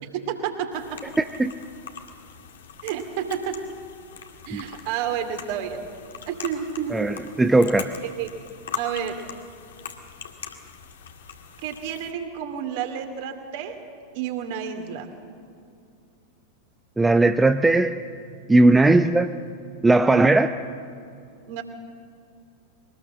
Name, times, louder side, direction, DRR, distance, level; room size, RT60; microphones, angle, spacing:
voice 1, 0.0-1.0 2.8-3.6 4.5-5.8 6.3-7.1 8.0-8.3 8.8-9.2 11.6-13.8 14.1-15.1 20.1-20.3 21.5-21.6, right 8 dB, 50° right, 6 dB, 2.6 m, -30 dB
sound 1, 0.7-12.1, left 7 dB, 60° left, 1.9 m, -41 dB
voice 2, 6.9-7.9 17.0-18.0 18.5-19.3 19.8-20.5, right 2 dB, 10° right, 9 dB, 0.6 m, -18 dB
23.0 x 19.0 x 7.5 m, 2.5 s
figure-of-eight pair, 90°, 0 cm